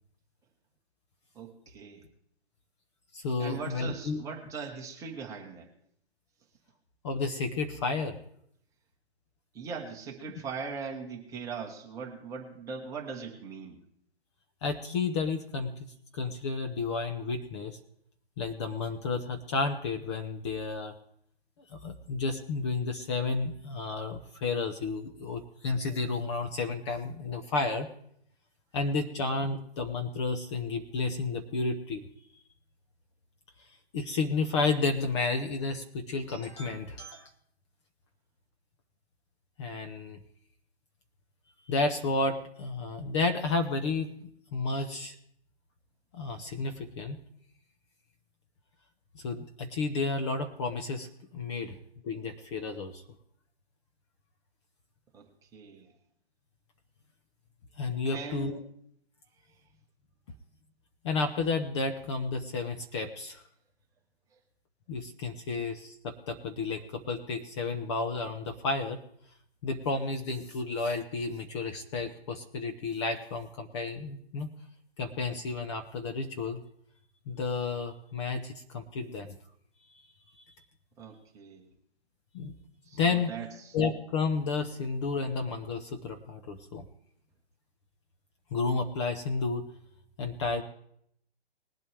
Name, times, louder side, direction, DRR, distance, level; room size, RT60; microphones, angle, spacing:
voice 1, 1.3-2.0 3.4-5.7 9.5-13.8 55.1-55.9 58.0-58.6 81.0-81.7 82.8-83.7, right 5 dB, 10° right, 0 dB, 1.4 m, -40 dB
voice 2, 3.1-4.2 7.0-8.2 14.6-15.7 16.1-17.8 18.4-20.9 21.7-27.9 28.7-32.1 33.9-37.3 39.6-40.2 41.7-44.1 44.5-45.2 46.1-47.2 49.1-51.8 52.0-53.0 57.8-58.6 61.0-63.4 64.9-69.0 69.6-74.5 75.0-76.6 77.3-79.4 82.3-82.5 82.9-83.3 83.7-86.8 88.5-89.7 90.2-90.6, left 3 dB, 25° left, 5 dB, 1.0 m, -31 dB
20.5 x 8.3 x 3.5 m, 0.69 s
figure-of-eight pair, 140°, 32 cm